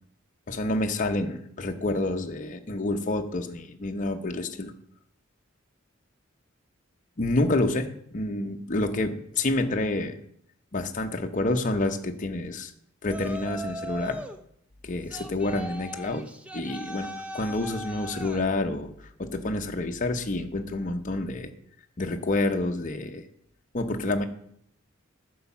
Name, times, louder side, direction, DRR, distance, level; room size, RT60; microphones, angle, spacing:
voice 1, 0.5-4.7 7.2-10.2 10.7-12.7 13.0-14.2 14.8-16.3 16.5-17.1 17.3-18.9 19.2-21.5 22.0-23.2 23.7-24.3, left 2 dB, 40° left, 4 dB, 0.8 m, -28 dB
Yell, 13.1-14.4 15.1-18.5, right 1 dB, 5° right, 0.7 m, -38 dB
11.0 x 4.8 x 7.1 m, 0.68 s
head